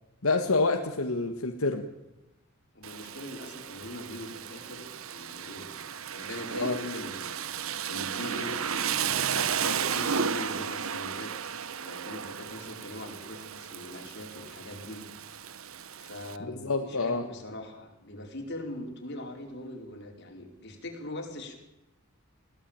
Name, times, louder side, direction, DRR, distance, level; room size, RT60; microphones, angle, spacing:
voice 1, 0.2-1.9 6.6-6.8 16.5-17.3, left 3 dB, 80° left, 4 dB, 1.7 m, -27 dB
voice 2, 2.7-5.7 6.1-7.4 7.9-11.3 11.8-15.0 15.3-15.5 16.0-21.6, left 1 dB, 55° left, 2 dB, 4.7 m, -41 dB
Rain, 2.8-16.4, right 7 dB, 75° right, 1.0 m, -34 dB
22.0 x 16.5 x 9.0 m, 0.91 s
head